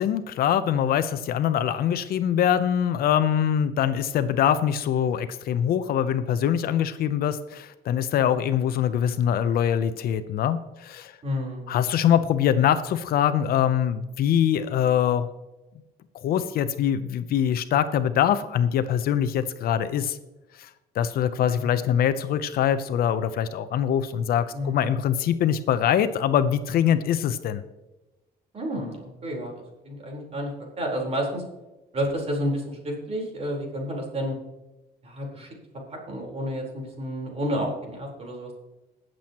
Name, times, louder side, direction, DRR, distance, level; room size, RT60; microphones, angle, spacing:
voice 1, 0.0-11.1 11.7-15.3 16.2-20.2 20.6-20.7 20.9-27.6, left 9 dB, 65° left, 12 dB, 0.7 m, -23 dB
voice 2, 11.2-11.7 21.6-21.7 24.5-24.9 28.5-30.5 30.8-31.4 31.9-34.4 35.0-35.5 35.9-38.6, equal, 40° right, 0 dB, 4.2 m, -30 dB
21.0 x 7.7 x 3.0 m, 1.0 s
cardioid pair, 110°, 17 cm